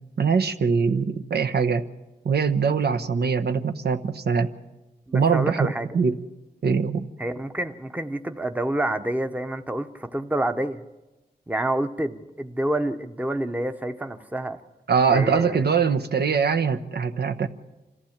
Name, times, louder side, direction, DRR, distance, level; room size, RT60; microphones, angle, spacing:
voice 1, 0.2-1.8 2.2-4.5 5.1-6.2 6.6-7.1 14.9-17.5, right 5 dB, 75° right, 8 dB, 1.0 m, -22 dB
voice 2, 5.1-6.0 7.2-10.8 11.5-14.6 15.1-15.6, right 1 dB, 10° right, 8 dB, 0.9 m, -28 dB
26.0 x 15.0 x 7.3 m, 1.1 s
wide cardioid pair, 100°, 17 cm